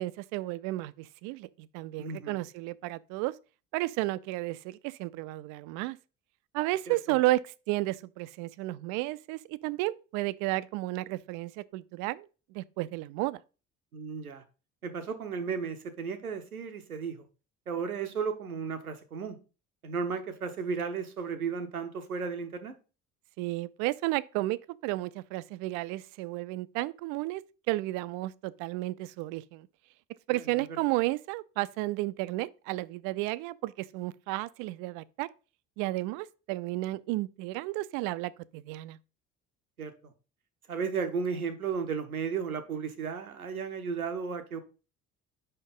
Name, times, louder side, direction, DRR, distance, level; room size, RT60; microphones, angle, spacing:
voice 1, 0.0-3.3 3.7-6.0 6.5-13.4 23.4-27.4 27.7-29.7 30.3-35.3 35.8-39.0, right 18 dB, 50° right, 0.4 m, -32 dB
voice 2, 2.0-2.4 6.9-7.2 13.9-14.4 14.8-17.2 17.7-19.4 19.8-22.7 30.3-30.4 39.8-39.9 40.7-44.6, right 5 dB, 85° right, 0.7 m, -34 dB
5.3 x 4.4 x 5.2 m
figure-of-eight pair, 55°, 42 cm